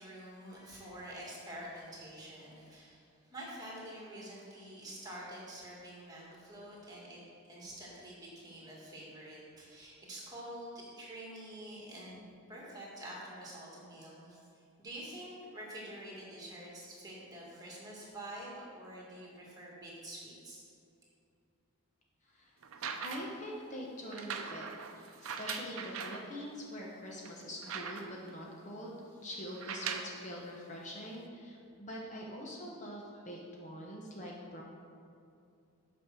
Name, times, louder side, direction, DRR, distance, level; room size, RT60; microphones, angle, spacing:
voice 1, 0.0-3.0 3.3-7.2 7.4-12.2 12.5-20.6, right 1 dB, 15° right, -5 dB, 2.0 m, -47 dB
sound 1, 22.6-23.4 24.1-26.3 26.8-26.9 27.2-28.3 29.5-30.2 31.1-31.2, right 6 dB, 65° right, 0.6 m, -41 dB
voice 2, 23.0-24.7 25.0-34.6, equal, 35° left, -2 dB, 0.9 m, -44 dB
8.4 x 5.3 x 6.1 m, 2.6 s
head